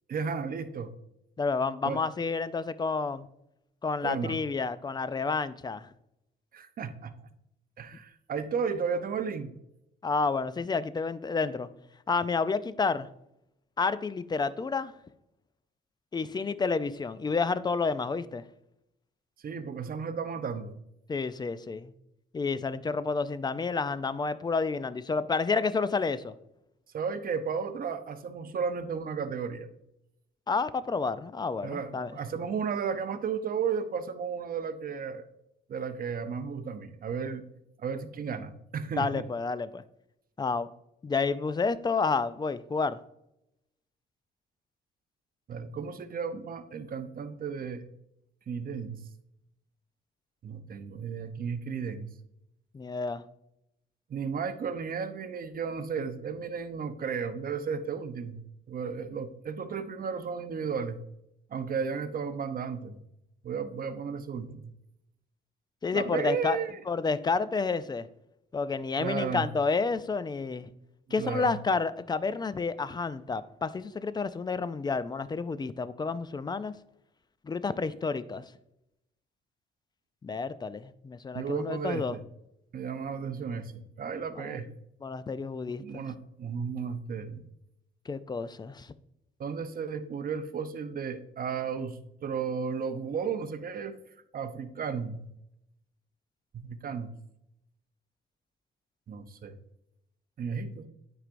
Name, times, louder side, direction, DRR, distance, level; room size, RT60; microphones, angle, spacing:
voice 1, 0.1-0.9 1.8-2.0 4.0-4.4 6.5-7.1 7.8-9.5 19.4-20.8 26.9-29.7 31.6-35.3 35.7-37.4 37.8-39.1 45.5-47.8 48.5-49.0 50.4-52.1 54.1-58.4 58.7-61.0 61.5-63.0 63.4-64.6 65.9-66.8 69.0-69.5 71.2-71.6 81.3-82.2 82.7-84.7 85.8-87.4 89.4-94.0 94.3-95.3 96.5-97.1 99.1-99.6 100.4-100.9, right 6 dB, 45° right, 0.7 m, -34 dB
voice 2, 1.4-3.3 3.8-5.9 10.0-11.7 12.1-13.1 13.8-14.9 16.1-18.4 21.1-21.9 22.3-26.3 30.5-32.1 39.0-39.8 40.4-40.7 41.0-43.0 52.7-53.2 65.8-66.6 66.9-68.1 68.5-70.7 71.1-76.7 77.4-78.4 80.2-82.2 84.4-84.6 85.0-86.0 88.1-88.9, left 4 dB, 20° left, 0.4 m, -30 dB
9.0 x 4.8 x 2.5 m
cardioid pair, 90°, 20 cm